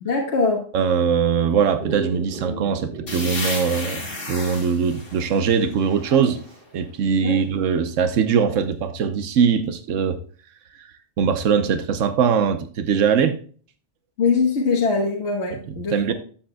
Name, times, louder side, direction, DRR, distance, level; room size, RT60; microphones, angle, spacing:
voice 1, 0.0-0.6 7.1-7.4 14.2-16.1, left 4 dB, 65° left, 0 dB, 1.5 m, -22 dB
voice 2, 0.7-6.4 6.7-10.2 10.7-10.9 11.2-13.4 15.5-16.1, right 6 dB, 90° right, 10 dB, 1.1 m, -21 dB
Dog, 1.8-4.5 4.8-4.9 6.0-6.6 8.7-8.8, right 3 dB, 45° right, 1.4 m, -36 dB
sound 1, 3.1-6.7, left 3 dB, 80° left, 2.5 m, -34 dB
11.5 x 7.5 x 2.2 m, 0.43 s
omnidirectional pair, 1.3 m